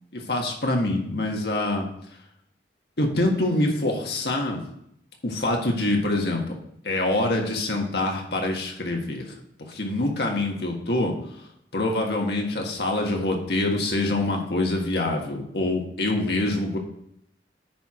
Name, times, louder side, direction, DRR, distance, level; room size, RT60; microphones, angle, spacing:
voice 1, 0.1-1.9 3.0-4.6 5.2-6.4 6.8-9.3 9.7-11.1 11.7-16.8, left 2 dB, 65° left, 1 dB, 1.6 m, -25 dB
9.4 x 4.6 x 4.9 m, 0.74 s
head